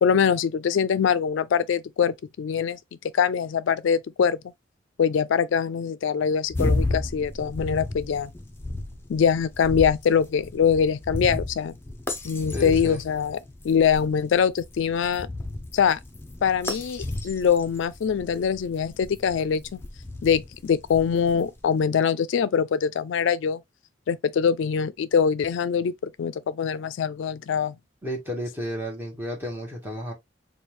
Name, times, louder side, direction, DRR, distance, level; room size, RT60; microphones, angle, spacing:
voice 1, 0.0-2.8 3.1-4.4 5.0-8.3 9.1-11.8 12.2-13.4 13.6-15.3 15.7-16.0 16.4-19.8 20.2-23.6 24.1-27.8, left 7 dB, 70° left, 0.3 m, -23 dB
sound 1, 6.5-21.6, left 2 dB, 10° left, 0.5 m, -33 dB
voice 2, 12.5-13.0 28.0-30.1, equal, 10° right, 1.0 m, -32 dB
4.3 x 2.3 x 3.2 m
head